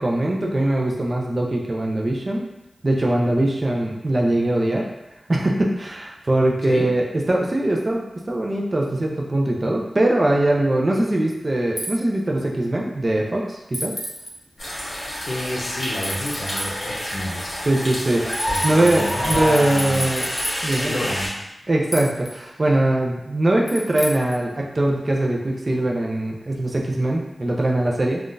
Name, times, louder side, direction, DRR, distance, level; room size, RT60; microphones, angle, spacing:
voice 1, 0.0-2.5 2.8-4.9 5.3-13.9 17.7-20.2 20.6-21.1 21.7-28.2, right 1 dB, 40° right, -1 dB, 0.4 m, -21 dB
sound 1, 11.8-11.9 13.7-14.3 16.0-16.7 18.3-20.8 21.9-22.3 23.7-24.4, equal, 25° left, 0.6 m, -30 dB
sound 2, 14.6-21.3, equal, 50° left, 1.4 m, -28 dB
voice 2, 15.3-17.6 18.5-20.3 20.9-21.3, left 1 dB, 80° left, -2 dB, 0.6 m, -30 dB
3.7 x 2.3 x 2.5 m, 0.93 s
wide cardioid pair, 95°, 0 cm